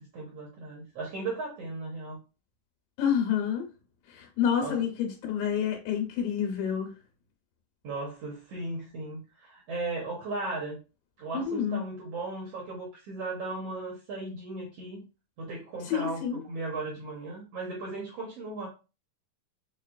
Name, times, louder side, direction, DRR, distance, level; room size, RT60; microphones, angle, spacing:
voice 1, 0.0-2.2 4.6-4.9 7.8-10.8 11.2-15.0 15.4-18.7, right 3 dB, 85° right, 1.4 m, -36 dB
voice 2, 3.0-3.6 4.1-6.9 11.3-11.8 15.8-16.4, left 8 dB, 85° left, 2.7 m, -28 dB
6.2 x 2.4 x 2.3 m
omnidirectional pair, 3.9 m